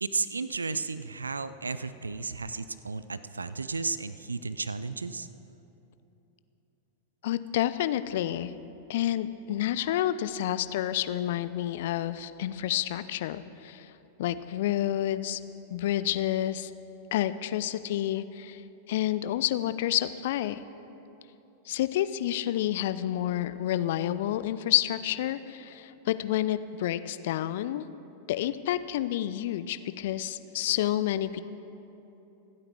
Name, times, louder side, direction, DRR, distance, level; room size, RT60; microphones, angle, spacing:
voice 1, 0.0-5.3, right 4 dB, 75° right, 14 dB, 0.5 m, -33 dB
voice 2, 7.2-8.5 8.9-13.9 14.2-15.4 15.7-16.7 17.1-18.6 18.9-20.6 21.7-27.9 28.3-31.4, left 12 dB, 55° left, 14 dB, 0.5 m, -29 dB
25.5 x 8.8 x 4.6 m, 3.0 s
figure-of-eight pair, 90°, 0 cm